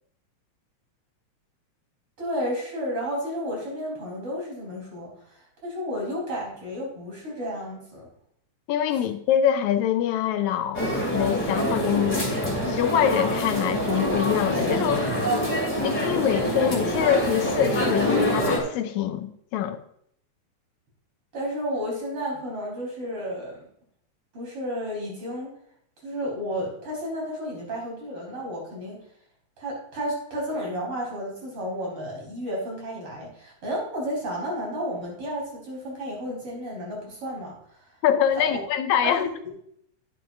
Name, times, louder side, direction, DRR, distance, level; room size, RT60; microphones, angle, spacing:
voice 1, 2.2-8.1 21.3-23.7 24.3-25.5 26.0-29.0 29.6-37.6 38.5-38.6 39.0-39.5, equal, 50° right, -2 dB, 4.6 m, -32 dB
voice 2, 8.7-12.3 12.7-15.1 15.8-19.8 38.0-39.2, left 9 dB, 85° left, 9 dB, 2.0 m, -24 dB
sound 1, 10.7-18.6, equal, 5° left, 2.0 m, -25 dB
10.5 x 10.0 x 2.6 m, 0.68 s
omnidirectional pair, 3.3 m